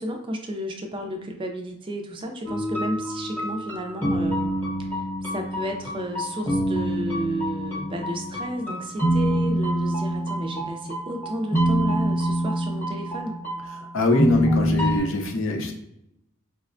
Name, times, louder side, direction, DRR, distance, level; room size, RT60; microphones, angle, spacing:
voice 1, 0.0-4.5 4.8-13.4, right 1 dB, 25° right, 4 dB, 0.3 m, -32 dB
sound 1, 2.5-15.0, equal, 10° left, 0.8 m, -26 dB
voice 2, 13.9-15.7, left 1 dB, 65° left, 3 dB, 0.6 m, -23 dB
4.8 x 2.0 x 2.5 m, 0.80 s
head